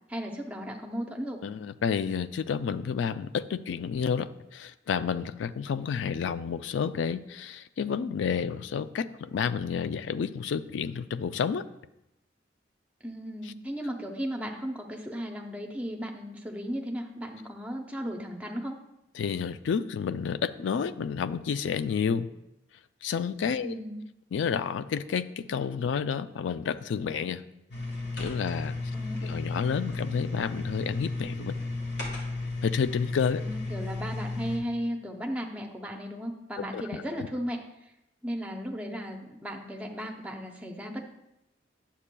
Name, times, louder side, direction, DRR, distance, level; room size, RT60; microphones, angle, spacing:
voice 1, 0.1-1.4 13.0-18.8 23.6-24.0 28.9-29.4 33.4-37.6 38.2-41.1, equal, 5° right, 2 dB, 0.6 m, -35 dB
voice 2, 1.4-11.6 19.1-22.3 23.0-23.8 24.3-27.4 28.2-28.8 29.2-31.5 32.6-33.4 36.7-36.8, left 6 dB, 80° left, 12 dB, 0.3 m, -30 dB
sound 1, 27.7-34.6, left 2 dB, 65° left, 1.6 m, -33 dB
9.9 x 7.2 x 2.2 m, 0.87 s
head